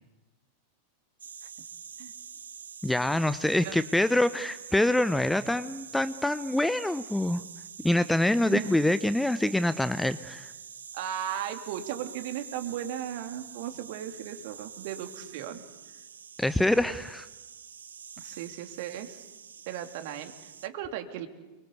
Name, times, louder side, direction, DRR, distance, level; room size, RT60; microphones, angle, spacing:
sound 1, 1.2-20.7, right 7 dB, 70° right, 1.0 m, -46 dB
voice 1, 2.8-7.4 7.8-10.5 16.4-17.3, left 1 dB, 5° left, 15 dB, 0.8 m, -25 dB
voice 2, 8.4-8.8 10.9-15.6 18.2-19.2 19.7-21.3, right 10 dB, 50° right, 7 dB, 3.1 m, -36 dB
30.0 x 24.0 x 8.4 m, 1.2 s
figure-of-eight pair, 90°, 0 cm